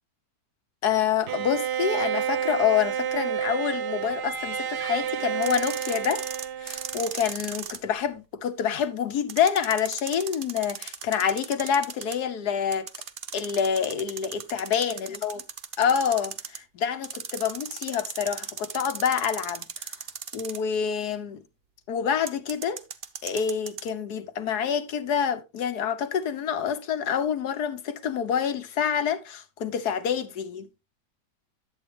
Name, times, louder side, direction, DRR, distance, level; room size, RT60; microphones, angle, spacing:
voice 1, 0.8-6.2 6.6-12.9 13.3-15.4 15.8-19.7 20.3-21.4 21.9-22.8 23.2-30.7, left 8 dB, 65° left, 1.4 m, -27 dB
Bowed string instrument, 1.3-7.3, right 9 dB, 75° right, 1.2 m, -30 dB
sound 1, 5.4-7.8 9.3-12.2 12.7-16.6 17.0-20.8 22.3-23.9, right 7 dB, 50° right, 0.7 m, -37 dB
10.5 x 8.1 x 3.0 m
omnidirectional pair, 1.9 m